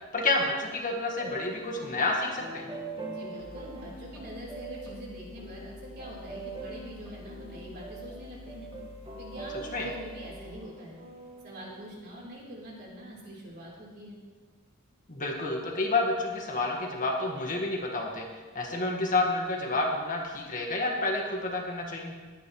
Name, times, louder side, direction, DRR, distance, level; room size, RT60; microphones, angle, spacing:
voice 1, 0.1-2.7 9.7-9.9 15.1-18.2 18.6-22.1, left 2 dB, 40° left, 0 dB, 1.7 m, -29 dB
sound 1, 1.2-12.2, right 3 dB, 25° right, 1.7 m, -44 dB
voice 2, 3.1-8.7 9.1-11.0 11.4-14.2, equal, 50° right, -4 dB, 3.8 m, -44 dB
sound 2, 3.4-10.6, left 2 dB, 15° left, 2.3 m, -49 dB
20.0 x 9.9 x 3.2 m, 1.4 s
head